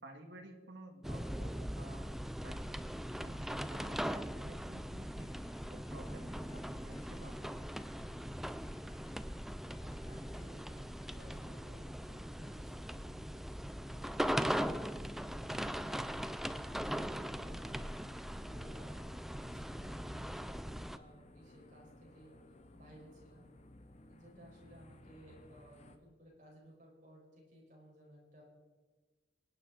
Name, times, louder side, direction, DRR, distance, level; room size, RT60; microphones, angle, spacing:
voice 1, 0.0-2.1 2.4-5.3 5.7-7.6, right 1 dB, 65° right, 3 dB, 2.2 m, -52 dB
sound 1, 1.0-21.0, equal, ahead, 0.3 m, -40 dB
Drum kit, 4.8-12.6, left 2 dB, 90° left, 1.2 m, -64 dB
voice 2, 9.6-15.9 16.2-23.5 24.1-28.4, equal, 45° right, -2 dB, 5.4 m, -59 dB
sound 2, 16.5-26.0, left 1 dB, 35° left, 1.0 m, -58 dB
24.5 x 9.5 x 4.3 m, 1.3 s
head